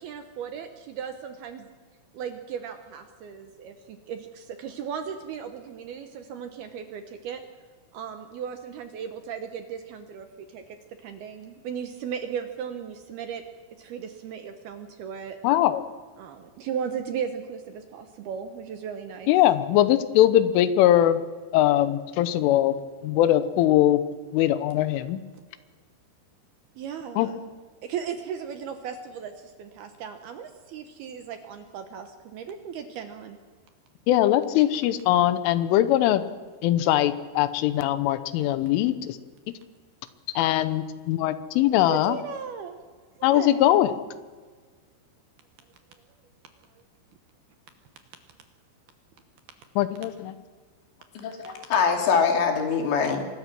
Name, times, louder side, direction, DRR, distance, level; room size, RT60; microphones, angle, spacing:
voice 1, 0.0-1.7 2.1-7.4 7.9-10.6 11.0-13.4 13.8-15.4 16.2-19.3 26.8-27.4 27.8-33.4 41.9-42.8 43.2-43.8, right 7 dB, 70° right, 7 dB, 2.5 m, -36 dB
voice 2, 15.4-15.8 19.3-21.2 21.5-22.8 23.0-24.0 24.3-25.2 27.2-27.3 34.1-36.2 36.6-39.2 40.4-42.2 43.2-43.9 49.8-50.3, left 13 dB, 90° left, 13 dB, 3.5 m, -21 dB
voice 3, 51.2-53.2, left 6 dB, 65° left, 3 dB, 4.6 m, -23 dB
25.0 x 20.0 x 6.1 m, 1.5 s
omnidirectional pair, 5.6 m